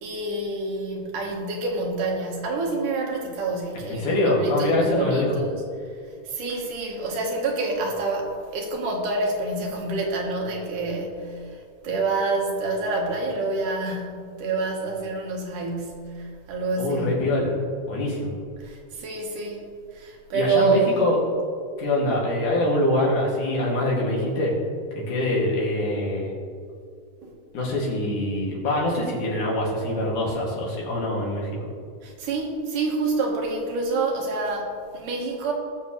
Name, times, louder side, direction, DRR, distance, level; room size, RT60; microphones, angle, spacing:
voice 1, 0.0-5.6 6.2-17.2 18.6-19.6 19.9-20.9 27.2-27.3 32.0-35.5, right 3 dB, 85° right, 0 dB, 3.1 m, -27 dB
voice 2, 3.9-5.4 16.8-17.6 17.9-18.3 20.3-21.2 21.8-24.5 24.9-26.3 27.5-31.7, left 1 dB, 75° left, -4 dB, 4.0 m, -24 dB
19.5 x 7.0 x 3.3 m, 2.2 s
omnidirectional pair, 3.6 m